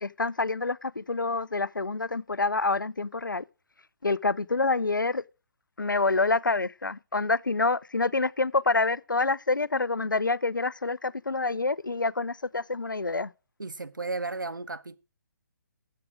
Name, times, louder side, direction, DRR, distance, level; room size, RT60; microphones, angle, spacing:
voice 1, 0.0-3.4 4.0-5.2 5.8-13.3, left 3 dB, 90° left, 0.5 m, -27 dB
voice 2, 13.6-15.0, right 3 dB, 85° right, 1.0 m, -34 dB
13.5 x 8.4 x 5.0 m
figure-of-eight pair, 135°, 10 cm